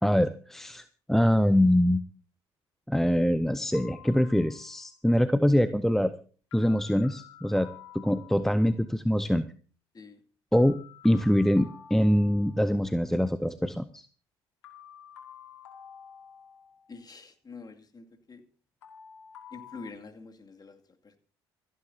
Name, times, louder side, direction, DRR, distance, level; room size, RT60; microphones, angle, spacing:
voice 1, 0.0-2.0 2.9-6.1 6.5-7.7 7.9-9.5 10.5-10.8 11.0-14.1, equal, ahead, 13 dB, 0.7 m, -24 dB
sound 1, 3.7-4.9 6.5-8.8 10.5-12.8 14.6-17.0 18.8-19.9, left 9 dB, 80° left, 2.3 m, -50 dB
voice 2, 16.9-18.4 19.5-21.2, left 4 dB, 30° left, 4 dB, 2.4 m, -46 dB
27.0 x 9.9 x 2.8 m, 0.39 s
figure-of-eight pair, 55°, 14 cm